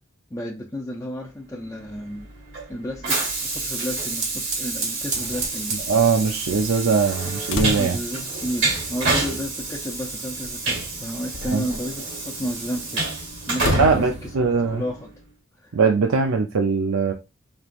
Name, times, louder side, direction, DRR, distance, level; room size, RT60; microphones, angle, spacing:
voice 1, 0.3-2.3 2.7-5.8 7.8-13.1 13.5-14.3 14.7-15.1 15.6-15.8, equal, 15° left, 0.4 m, -32 dB
Train, 1.9-15.1, right 3 dB, 60° right, 1.6 m, -29 dB
Gas hob ignition, 3.9-14.3, right 4 dB, 35° right, 0.6 m, -39 dB
voice 2, 5.9-8.0 11.5-11.6 13.8-14.8 15.7-17.1, right 5 dB, 80° right, 0.6 m, -21 dB
sound 1, 7.5-8.2 9.4-9.5 10.4-10.6 11.2-11.8 13.5-14.0, left 2 dB, 60° left, 0.5 m, -29 dB
5.1 x 3.0 x 2.5 m
head